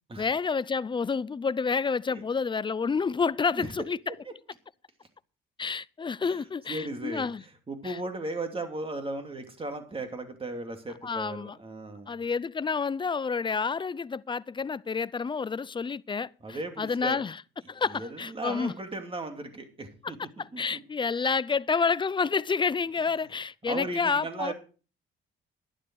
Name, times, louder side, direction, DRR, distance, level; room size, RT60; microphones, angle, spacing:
voice 1, 0.2-4.0 5.6-7.4 7.8-7.9 11.0-11.6 12.1-17.4 17.7-18.7 20.0-20.1 20.4-24.5, left 5 dB, 25° left, 0.5 m, -29 dB
voice 2, 6.7-12.2 16.4-17.2 17.9-20.2 20.5-20.8 23.7-24.5, right 2 dB, 25° right, 2.7 m, -36 dB
11.5 x 11.0 x 4.7 m
cardioid pair, 90°, 20 cm